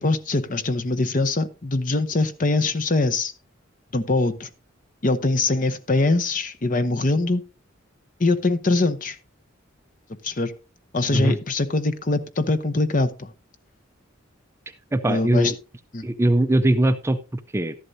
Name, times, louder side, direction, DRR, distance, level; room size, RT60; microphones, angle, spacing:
voice 1, 0.0-3.3 3.9-4.5 5.0-7.4 8.2-9.2 10.2-10.5 10.9-13.3 15.1-15.5 15.9-16.0, left 2 dB, 40° left, 10 dB, 0.8 m, -22 dB
voice 2, 14.9-15.6 16.0-17.8, right 1 dB, 15° right, 10 dB, 0.5 m, -21 dB
13.0 x 11.0 x 2.7 m, 0.30 s
head